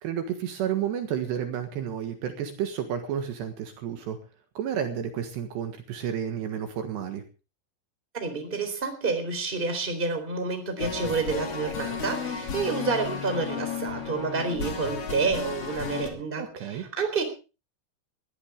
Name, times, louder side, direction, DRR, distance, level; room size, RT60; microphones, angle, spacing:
voice 1, 0.0-4.2 4.6-7.2 16.4-16.9, right 9 dB, 70° right, 6 dB, 3.5 m, -31 dB
voice 2, 8.1-17.2, right 4 dB, 10° right, 6 dB, 3.5 m, -29 dB
sound 1, 10.8-16.1, left 6 dB, 40° left, 3.0 m, -33 dB
20.5 x 14.5 x 3.6 m, 0.33 s
omnidirectional pair, 5.5 m